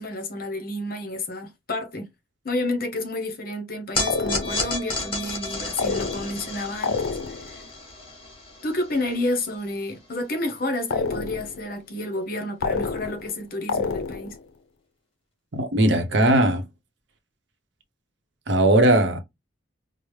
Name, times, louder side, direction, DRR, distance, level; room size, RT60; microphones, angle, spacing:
voice 1, 0.0-2.1 2.4-7.7 8.6-14.4, left 1 dB, 50° left, 0.9 m, -30 dB
sound 1, 3.9-10.3, left 2 dB, 30° left, 1.5 m, -32 dB
sound 2, 4.1-4.8 5.8-6.5 6.8-7.6 10.9-11.6 12.6-13.4 13.7-14.4, left 4 dB, 85° left, 0.5 m, -28 dB
voice 2, 15.5-16.7 18.5-19.2, right 1 dB, 65° right, 0.7 m, -19 dB
4.8 x 2.0 x 3.2 m
head